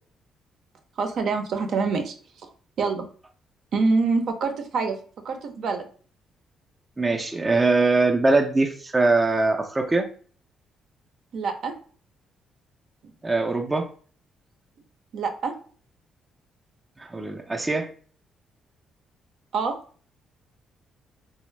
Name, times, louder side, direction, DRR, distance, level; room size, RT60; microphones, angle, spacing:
voice 1, 1.0-2.1 2.8-3.1 3.7-5.0 5.2-5.9 11.3-11.7 13.0-13.1 15.1-15.5 19.5-19.7, right 4 dB, 70° right, 0.5 m, -25 dB
voice 2, 7.0-10.1 13.2-13.9 17.0-17.9, right 3 dB, 20° right, 0.4 m, -22 dB
3.3 x 2.0 x 3.1 m
cardioid pair, 90°, 0 cm